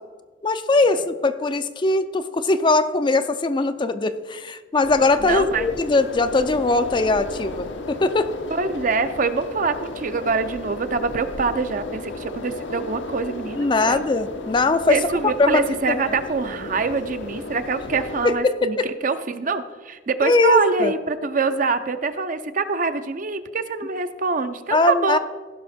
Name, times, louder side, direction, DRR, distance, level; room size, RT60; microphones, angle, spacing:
voice 1, 0.4-8.3 13.6-15.0 15.4-16.0 18.2-18.9 20.2-20.9 24.7-25.2, left 3 dB, 25° left, 10 dB, 0.4 m, -20 dB
sound 1, 4.8-18.3, left 2 dB, 80° left, 0.9 m, -34 dB
voice 2, 5.2-5.7 8.5-14.0 14.9-25.2, right 4 dB, 45° right, 10 dB, 0.6 m, -25 dB
15.5 x 5.8 x 4.2 m, 1.4 s
head